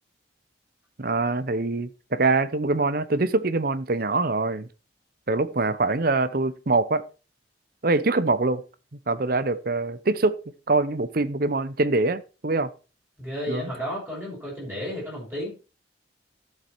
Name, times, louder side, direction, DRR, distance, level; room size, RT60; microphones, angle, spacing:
voice 1, 1.0-4.7 5.3-7.0 7.8-8.6 9.1-10.4 10.7-12.7 13.5-13.7, right 3 dB, 50° right, 0.8 m, -24 dB
voice 2, 13.2-15.5, equal, 10° right, 6.1 m, -32 dB
12.5 x 7.3 x 4.5 m
head